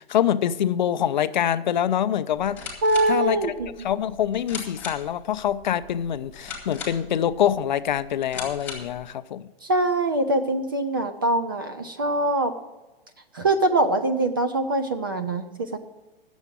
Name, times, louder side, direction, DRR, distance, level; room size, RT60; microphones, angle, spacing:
voice 1, 0.0-2.6 3.1-3.4 3.8-9.5, left 10 dB, 50° left, 13 dB, 0.5 m, -25 dB
sound 1, 2.3-9.0, left 5 dB, 5° left, 2.0 m, -40 dB
voice 2, 2.8-3.7 9.6-12.5 13.3-15.8, right 2 dB, 25° right, 8 dB, 0.4 m, -23 dB
9.9 x 7.1 x 9.0 m, 1.1 s
hypercardioid pair, 170°, 30 cm